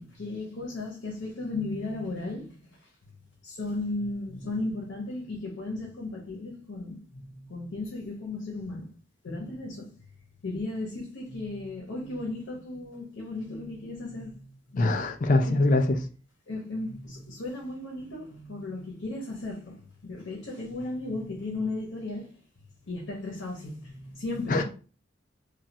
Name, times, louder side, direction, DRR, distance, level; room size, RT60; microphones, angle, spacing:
voice 1, 0.0-2.6 3.4-8.9 9.2-10.0 10.4-15.0 15.5-15.6 16.5-22.3 22.9-24.6, left 2 dB, 85° left, 0.8 m, -35 dB
voice 2, 14.8-16.0 24.5-24.6, left 2 dB, 45° left, 0.4 m, -23 dB
3.2 x 2.3 x 2.7 m
head